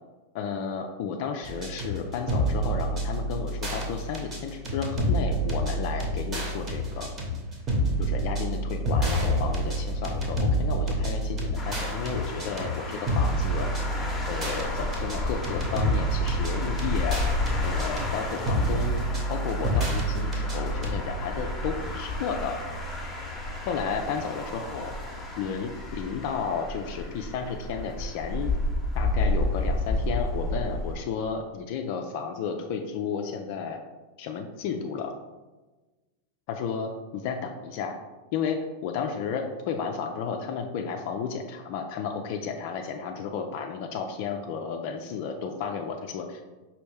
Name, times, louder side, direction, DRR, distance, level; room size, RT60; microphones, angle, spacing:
voice 1, 0.3-7.1 8.0-13.7 14.3-17.2 17.6-19.0 19.3-22.6 23.6-24.9 25.4-28.5 28.9-33.8 34.2-35.1 36.5-38.0 38.3-46.6, left 6 dB, 45° left, 4 dB, 0.3 m, -33 dB
sound 1, 1.4-21.0, right 1 dB, 25° right, 1.0 m, -28 dB
sound 2, 11.6-31.0, left 2 dB, 5° left, 0.8 m, -32 dB
5.1 x 2.7 x 3.2 m, 1.2 s
figure-of-eight pair, 90°, 0 cm